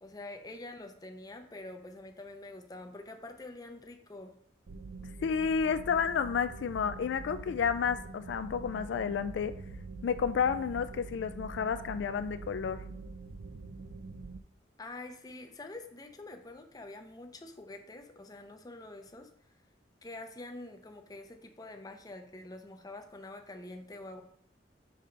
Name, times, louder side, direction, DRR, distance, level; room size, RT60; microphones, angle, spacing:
voice 1, 0.0-4.3 14.8-19.3 20.0-24.2, left 2 dB, 20° left, 5 dB, 0.5 m, -46 dB
sound 1, 4.7-14.4, right 3 dB, 75° right, 0.5 m, -45 dB
voice 2, 5.2-9.6 10.0-12.9, left 6 dB, 80° left, 12 dB, 0.3 m, -31 dB
5.6 x 5.2 x 3.3 m, 0.67 s
head